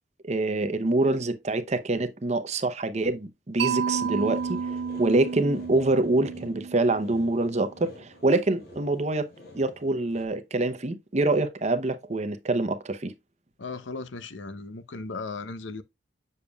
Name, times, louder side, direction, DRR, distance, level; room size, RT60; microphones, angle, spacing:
voice 1, 0.2-4.6 5.0-9.3 9.5-13.1, right 2 dB, 40° right, 0.7 m, -25 dB
Mallet percussion, 3.6-7.6, right 6 dB, 65° right, 0.4 m, -31 dB
sound 1, 3.9-10.3, left 1 dB, 60° left, 1.9 m, -48 dB
voice 2, 13.6-15.8, left 3 dB, 85° left, 0.7 m, -36 dB
7.1 x 6.6 x 2.3 m
head